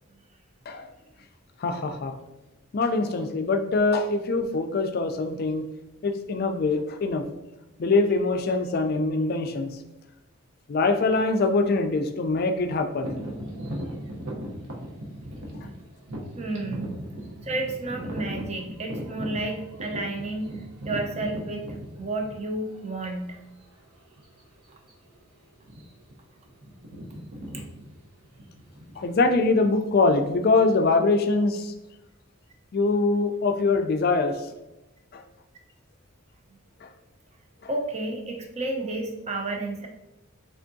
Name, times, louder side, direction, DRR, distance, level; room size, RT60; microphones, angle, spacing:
voice 1, 1.6-2.1 2.7-5.6 6.0-7.2 7.8-9.7 10.7-13.2 29.0-31.7 32.7-34.3 35.1-35.2 36.8-36.9, left 3 dB, 45° left, 7 dB, 0.4 m, -23 dB
sound 1, 13.0-22.8 23.4-23.5 24.2-24.4 24.7-24.9 25.6-26.1 26.4-29.8, equal, 85° right, 0.8 m, -37 dB
voice 2, 16.4-17.0 17.4-20.6 20.8-21.7 22.0-23.4 37.7-39.9, right 2 dB, 30° right, 2 dB, 0.5 m, -31 dB
3.6 x 3.4 x 2.6 m, 0.97 s
head